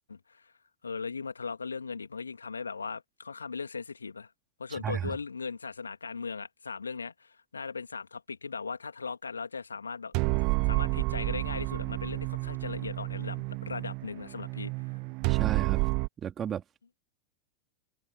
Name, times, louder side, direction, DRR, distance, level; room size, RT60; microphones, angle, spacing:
voice 1, 0.1-0.5 0.8-4.3 4.6-10.1 10.6-14.7, left 5 dB, 75° left, 3.0 m, -38 dB
voice 2, 4.7-5.2 15.3-15.9 16.2-16.6, right 9 dB, 25° right, 3.6 m, -34 dB
sound 1, 10.1-16.1, right 31 dB, 45° right, 1.0 m, -30 dB
figure-of-eight pair, 90°, 0 cm